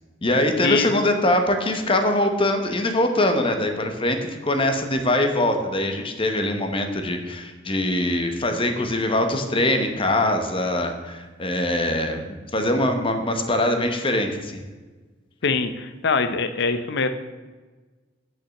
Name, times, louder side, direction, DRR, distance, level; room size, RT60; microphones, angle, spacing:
voice 1, 0.2-14.6, left 1 dB, 30° left, 6 dB, 1.0 m, -23 dB
voice 2, 15.4-17.1, left 4 dB, 60° left, 10 dB, 0.7 m, -23 dB
8.7 x 6.2 x 7.0 m, 1.3 s
head